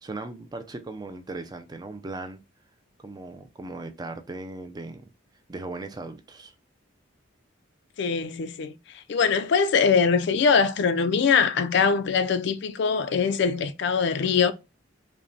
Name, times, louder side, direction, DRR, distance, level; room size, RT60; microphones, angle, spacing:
voice 1, 0.0-2.4 3.0-5.0 5.5-6.5, right 2 dB, 20° right, 0.4 m, -38 dB
voice 2, 8.0-8.7 9.1-14.5, left 5 dB, 60° left, 0.4 m, -22 dB
5.2 x 2.1 x 2.6 m
head